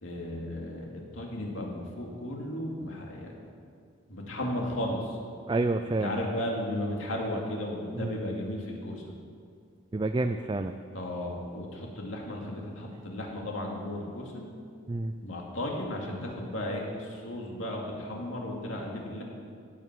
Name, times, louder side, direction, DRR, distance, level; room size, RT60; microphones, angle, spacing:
voice 1, 0.0-3.3 4.1-5.2 5.9-9.1 10.9-14.5 15.2-19.2, left 1 dB, 75° left, -1 dB, 2.4 m, -35 dB
voice 2, 5.5-6.2 7.9-8.2 9.9-10.8 14.9-15.1, right 2 dB, 25° right, 7 dB, 0.4 m, -29 dB
16.0 x 8.7 x 6.1 m, 2.2 s
head